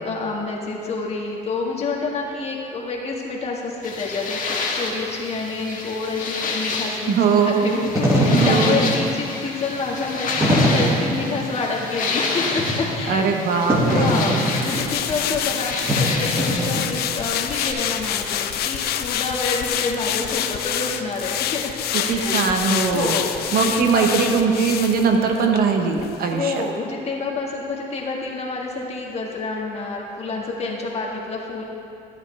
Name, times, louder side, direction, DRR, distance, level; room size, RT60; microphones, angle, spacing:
voice 1, 0.0-4.4 4.7-13.3 13.9-22.3 22.9-24.0 26.3-31.6, left 3 dB, 40° left, -2 dB, 1.7 m, -28 dB
sound 1, 3.8-17.7, left 4 dB, 55° left, 1.4 m, -29 dB
voice 2, 7.1-7.9 8.3-8.9 13.1-14.2 21.9-23.2 23.5-26.7, right 5 dB, 65° right, 4 dB, 1.1 m, -20 dB
Wind / Fire, 7.7-17.2, equal, 15° right, 1.9 m, -23 dB
sound 2, 14.1-25.6 26.0-26.1, left 10 dB, 70° left, 0.6 m, -27 dB
13.0 x 8.7 x 3.3 m, 2.7 s
cardioid pair, 110°, 17 cm